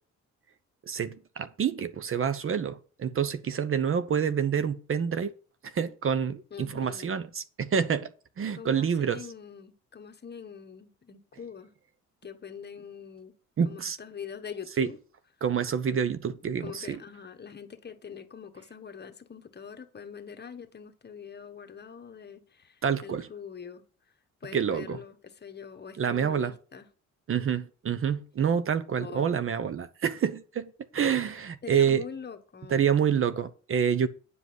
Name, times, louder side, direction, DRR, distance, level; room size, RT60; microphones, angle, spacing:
voice 1, 0.9-5.3 5.6-8.1 8.4-9.2 13.6-14.0 14.8-14.9 15.4-17.0 22.8-23.3 24.5-25.0 26.0-26.5 27.3-32.0 32.7-34.1, right 7 dB, 45° right, 0.9 m, -27 dB
voice 2, 6.5-7.1 8.5-11.7 12.2-13.3 13.6-15.0 16.6-23.8 24.4-26.9 29.0-29.5 31.6-32.9, left 7 dB, 35° left, 1.3 m, -44 dB
9.6 x 5.1 x 7.9 m
cardioid pair, 90°, 30 cm